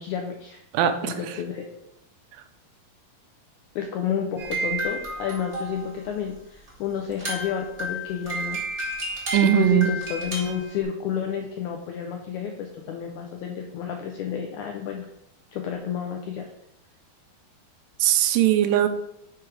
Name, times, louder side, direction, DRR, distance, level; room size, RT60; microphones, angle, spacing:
voice 1, 0.0-0.6 1.0-1.7 3.7-8.6 9.4-15.1 15.5-16.4, left 8 dB, 85° left, 3 dB, 1.7 m, -30 dB
voice 2, 0.7-1.3 9.3-9.9 18.0-18.9, right 12 dB, 80° right, 9 dB, 2.1 m, -20 dB
sound 1, 4.4-6.1 6.7-6.8 7.0-10.8, right 2 dB, 40° right, 0.7 m, -31 dB
6.1 x 4.6 x 4.8 m, 0.84 s
omnidirectional pair, 4.1 m